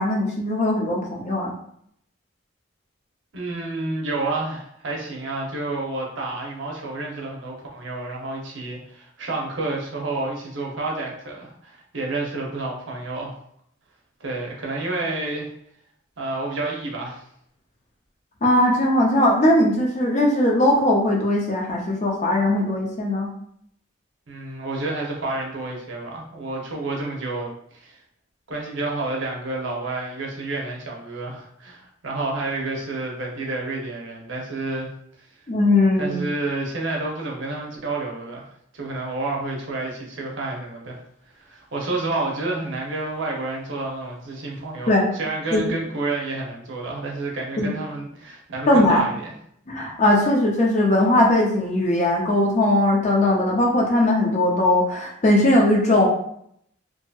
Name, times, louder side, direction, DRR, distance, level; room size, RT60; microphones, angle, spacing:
voice 1, 0.0-1.5 18.4-23.3 35.5-36.2 44.9-45.1 45.5-45.6 47.6-47.7 48.7-49.0 49.7-56.1, left 1 dB, 35° left, -1 dB, 0.5 m, -19 dB
voice 2, 3.3-13.3 14.2-15.5 16.2-17.2 24.3-28.0 28.5-34.9 35.2-35.3 36.0-38.5 38.7-41.0 41.3-49.3, right 2 dB, 65° right, -1 dB, 0.7 m, -29 dB
2.7 x 2.6 x 2.3 m, 0.70 s
head